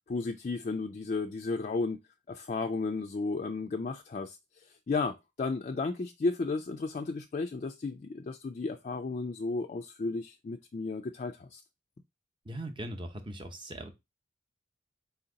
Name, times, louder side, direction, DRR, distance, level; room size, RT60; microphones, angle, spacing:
voice 1, 0.1-2.0 2.3-11.6, left 3 dB, 40° left, 0.3 m, -33 dB
voice 2, 12.4-13.9, right 1 dB, 25° right, 0.7 m, -40 dB
4.3 x 2.8 x 3.8 m
head